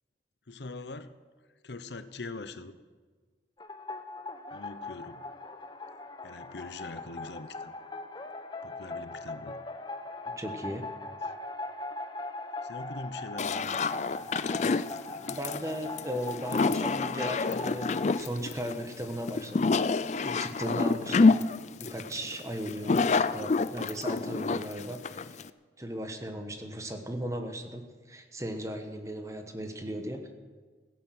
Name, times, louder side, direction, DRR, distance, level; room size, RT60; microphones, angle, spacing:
voice 1, 0.5-1.2 1.6-2.8 4.5-5.3 6.2-7.7 8.6-9.6 12.6-14.0, left 3 dB, 80° left, 12 dB, 0.9 m, -42 dB
sound 1, 3.6-18.2, left 2 dB, 25° left, 0.9 m, -40 dB
voice 2, 10.4-10.9 15.3-21.4 21.8-25.4 25.8-30.3, equal, 20° right, 6 dB, 1.2 m, -37 dB
sound 2, 13.4-25.5, left 4 dB, 40° left, 0.4 m, -27 dB
16.0 x 10.5 x 7.8 m, 1.4 s
head